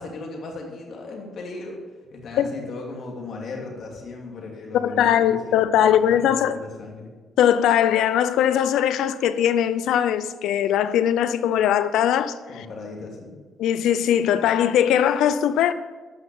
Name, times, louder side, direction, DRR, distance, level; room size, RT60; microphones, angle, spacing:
voice 1, 0.0-1.8 2.1-7.1 12.5-13.4, left 3 dB, 60° left, 2.8 m, -37 dB
voice 2, 4.8-6.6 7.4-12.7 13.6-15.7, left 10 dB, 85° left, 0.6 m, -20 dB
13.0 x 6.0 x 7.1 m
cardioid pair, 90°, 0 cm